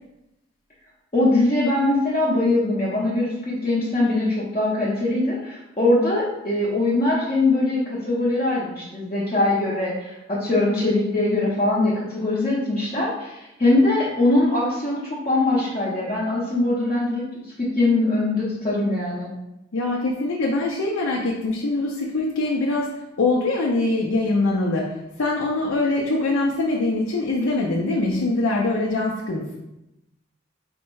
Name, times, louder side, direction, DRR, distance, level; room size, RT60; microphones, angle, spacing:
voice 1, 1.1-19.3, left 2 dB, 35° left, -9 dB, 0.8 m, -22 dB
voice 2, 19.7-22.9 23.2-24.9 25.2-29.6, left 2 dB, 90° left, -3 dB, 0.6 m, -23 dB
4.4 x 2.1 x 4.5 m, 0.92 s
head